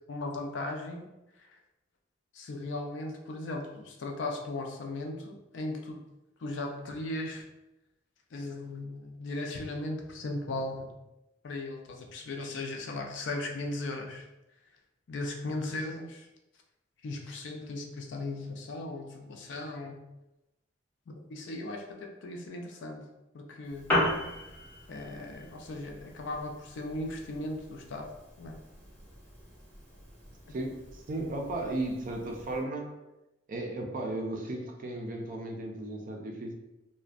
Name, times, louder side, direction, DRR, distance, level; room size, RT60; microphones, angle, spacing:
voice 1, 0.1-1.1 1.4-1.6 2.3-6.0 6.4-7.5 8.3-10.9 11.4-14.3 15.1-16.3 17.0-20.0 21.1-23.9 24.9-28.1 28.4-28.6, left 2 dB, 70° left, 2 dB, 0.4 m, -37 dB
Piano, 23.6-32.6, left 1 dB, 10° left, 0.5 m, -37 dB
voice 2, 30.5-33.0 33.5-36.5, right 2 dB, 45° right, 2 dB, 0.4 m, -35 dB
2.4 x 2.1 x 2.4 m, 0.96 s
head